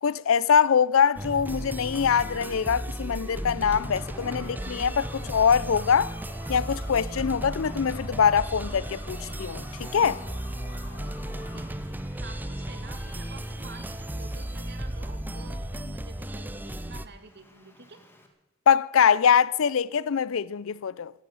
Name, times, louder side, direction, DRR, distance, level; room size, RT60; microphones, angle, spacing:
voice 1, 0.0-6.1 6.5-10.2 18.7-21.1, left 7 dB, 70° left, 0.5 m, -23 dB
sound 1, 1.2-17.1, right 1 dB, 10° right, 0.6 m, -35 dB
Traffic noise roadway noise, 3.3-18.3, left 1 dB, 10° left, 2.1 m, -55 dB
sound 2, 3.6-11.6, left 2 dB, 35° left, 6.5 m, -48 dB
voice 2, 11.5-18.0, right 3 dB, 55° right, 2.1 m, -48 dB
16.5 x 11.0 x 7.6 m
head